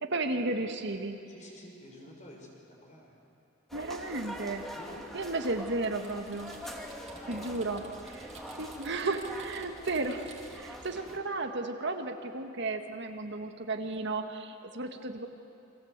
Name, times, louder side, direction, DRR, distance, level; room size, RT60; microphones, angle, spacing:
voice 1, 0.0-1.2 3.7-4.6 5.1-6.5 7.3-7.8 8.1-8.3 8.6-15.3, right 2 dB, 60° right, 5 dB, 1.8 m, -34 dB
voice 2, 1.3-3.2 4.7-5.1 7.1-7.6 8.3-8.6 11.1-11.2, left 1 dB, 40° left, 0 dB, 6.2 m, -50 dB
sound 1, 3.7-11.2, equal, ahead, 2.5 m, -44 dB
Typing, 5.8-10.7, right 4 dB, 35° right, 3.0 m, -53 dB
29.5 x 24.5 x 8.2 m, 2.7 s
head